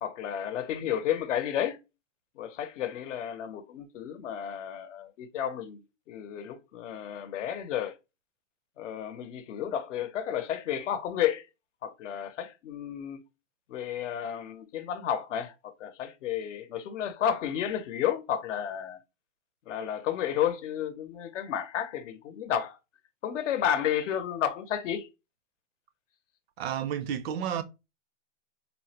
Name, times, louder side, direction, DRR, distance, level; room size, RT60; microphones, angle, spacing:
voice 1, 0.0-1.8 2.4-8.0 8.8-11.5 11.8-13.2 13.7-19.0 19.7-22.8 23.2-25.1, left 9 dB, 70° left, 0.7 m, -32 dB
voice 2, 26.6-27.6, right 9 dB, 55° right, 0.4 m, -31 dB
3.8 x 2.0 x 2.8 m
hypercardioid pair, 155°, 38 cm